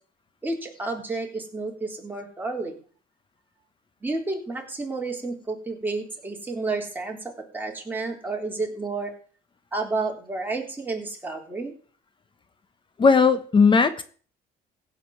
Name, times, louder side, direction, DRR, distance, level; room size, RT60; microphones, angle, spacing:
voice 1, 0.4-2.8 4.0-7.2 7.5-9.1 9.7-11.7, right 3 dB, 10° right, 0 dB, 3.7 m, -30 dB
voice 2, 13.0-14.0, left 5 dB, 30° left, 11 dB, 1.1 m, -17 dB
15.5 x 5.4 x 7.9 m, 0.43 s
cardioid pair, 110°, 17 cm